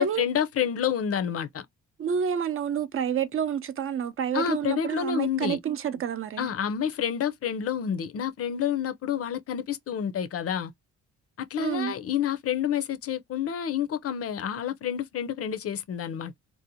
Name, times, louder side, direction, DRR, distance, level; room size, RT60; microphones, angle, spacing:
voice 1, 0.0-1.7 4.3-5.6 6.4-10.7 11.4-16.4, left 8 dB, 50° left, 0.5 m, -29 dB
voice 2, 2.0-6.5 11.6-11.9, right 8 dB, 45° right, 0.5 m, -29 dB
2.6 x 2.1 x 2.7 m
cardioid pair, 90°, 30 cm